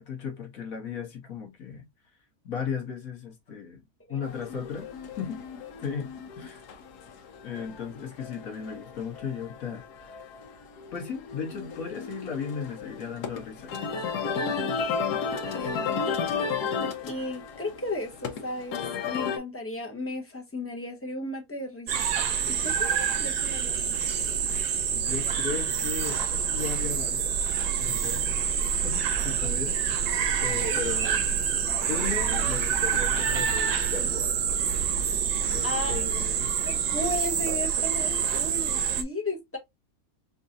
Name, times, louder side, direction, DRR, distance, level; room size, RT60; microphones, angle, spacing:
voice 1, 0.0-1.9 2.4-3.8 4.1-4.9 5.2-5.4 5.8-6.6 7.4-10.2 10.9-13.8 24.9-27.5 27.7-28.2 28.8-30.1 30.4-31.3 31.9-34.4 35.5-36.5, left 6 dB, 60° left, 1.5 m, -36 dB
sound 1, 4.2-19.4, left 5 dB, 80° left, 1.3 m, -34 dB
voice 2, 14.3-14.7 15.5-16.1 17.0-22.1 22.5-23.7 30.6-30.8 35.6-36.0 36.6-39.6, left 2 dB, 15° left, 0.5 m, -35 dB
sound 2, 21.9-39.0, right 7 dB, 80° right, 1.2 m, -27 dB
5.2 x 2.6 x 2.6 m
omnidirectional pair, 1.7 m